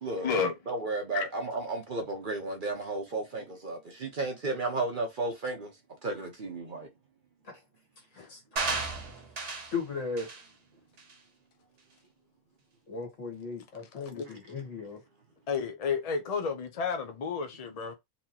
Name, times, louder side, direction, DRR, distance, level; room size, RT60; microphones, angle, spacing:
voice 1, 0.1-0.5 1.1-1.3 8.2-8.3 13.9-14.3 15.5-17.9, left 5 dB, 50° left, 0.4 m, -31 dB
voice 2, 0.7-5.7 6.0-6.9, right 2 dB, 45° right, 0.9 m, -33 dB
sound 1, 8.6-9.8 10.2-10.4 11.0-11.1, right 4 dB, 65° right, 1.5 m, -33 dB
voice 3, 9.7-10.4 12.9-15.0, left 4 dB, 70° left, 2.1 m, -37 dB
4.1 x 2.9 x 2.7 m
omnidirectional pair, 1.4 m